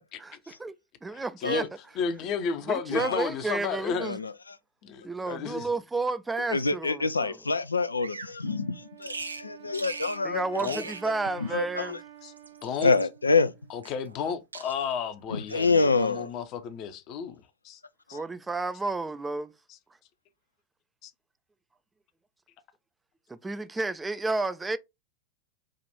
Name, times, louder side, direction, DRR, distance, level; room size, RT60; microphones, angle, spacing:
voice 1, 0.2-0.7 1.0-1.7 2.7-4.2 5.0-7.4 10.2-12.0 18.1-19.5 23.3-24.8, right 3 dB, 10° right, 0.4 m, -31 dB
voice 2, 1.1-1.7 2.0-4.1 4.8-5.7 10.6-10.9 12.2-12.3 12.6-12.9 13.7-17.4 17.6-17.8 18.1-18.2 19.7-19.8 21.0-21.1, left 6 dB, 40° left, 0.7 m, -33 dB
voice 3, 2.9-3.2 4.0-4.3 6.5-10.7 11.4-12.0 12.8-13.5 15.5-16.3 18.1-18.2, left 4 dB, 80° left, 0.4 m, -26 dB
Bird vocalization bird call bird song, 8.0-8.4 9.0-9.5 9.7-10.2 10.5-11.1 12.1-13.1 13.8-14.3 14.5-15.0 15.5-15.9, right 4 dB, 75° right, 0.4 m, -40 dB
Wind instrument woodwind instrument, 8.4-13.8, right 11 dB, 50° right, 1.0 m, -50 dB
4.9 x 2.5 x 4.1 m
figure-of-eight pair, 90°, 0 cm